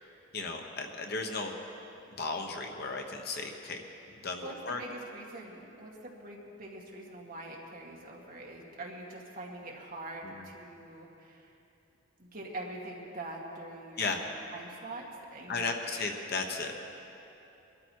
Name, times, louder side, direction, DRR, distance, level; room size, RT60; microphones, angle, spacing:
voice 1, 0.3-1.5 2.2-3.8 4.2-4.8 10.2-10.5 14.0-14.2 15.5-16.8, left 3 dB, 50° left, 3 dB, 1.2 m, -35 dB
voice 2, 4.4-11.5 12.2-14.2 14.5-15.9, right 2 dB, 45° right, -2 dB, 2.1 m, -44 dB
22.5 x 13.0 x 4.7 m, 2.8 s
head